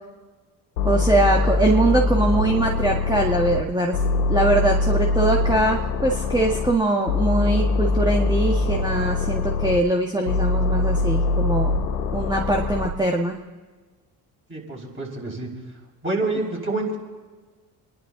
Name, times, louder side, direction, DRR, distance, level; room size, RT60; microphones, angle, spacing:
sound 1, 0.8-3.6 3.9-6.7 7.1-9.8 10.3-12.9, left 3 dB, 90° left, 1.0 m, -23 dB
voice 1, 0.8-4.0 4.3-11.7 12.1-13.4, right 2 dB, 10° right, 0 dB, 1.6 m, -22 dB
voice 2, 14.5-15.5 16.0-17.0, right 2 dB, 25° right, -1 dB, 5.4 m, -27 dB
27.0 x 11.0 x 3.8 m, 1.4 s
hypercardioid pair, 55°, 44 cm